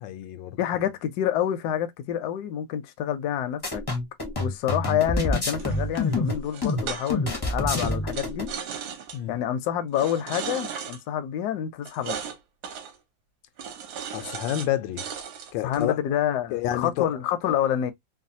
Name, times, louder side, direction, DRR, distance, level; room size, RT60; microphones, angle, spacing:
voice 1, 0.0-0.6 9.1-9.3 14.1-15.0 15.5-16.0 16.5-17.1, left 12 dB, 90° left, 1.3 m, -29 dB
voice 2, 0.6-3.8 4.4-8.5 9.3-12.2 15.6-17.9, left 10 dB, 70° left, 1.0 m, -27 dB
sound 1, 3.6-8.5, left 2 dB, 35° left, 0.4 m, -27 dB
sound 2, 5.6-7.4 7.7-9.2 9.9-11.0 11.9-12.4 12.6-13.0 13.6-14.7 15.0-15.8, right 7 dB, 70° right, 1.2 m, -36 dB
3.1 x 2.2 x 2.6 m
omnidirectional pair, 2.0 m